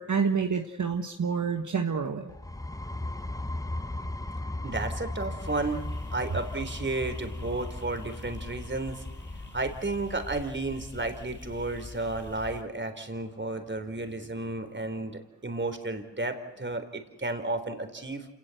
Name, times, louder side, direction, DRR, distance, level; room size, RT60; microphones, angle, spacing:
voice 1, 0.0-2.3, right 5 dB, 50° right, 5 dB, 1.5 m, -28 dB
sound 1, 2.3-9.9, left 1 dB, 10° left, 0.8 m, -37 dB
voice 2, 4.6-5.8 6.1-9.0 9.5-18.3, right 2 dB, 30° right, 7 dB, 3.9 m, -32 dB
sound 2, 5.4-12.6, left 2 dB, 30° left, 3.3 m, -44 dB
27.5 x 18.5 x 7.9 m, 0.95 s
cardioid pair, 55°, 37 cm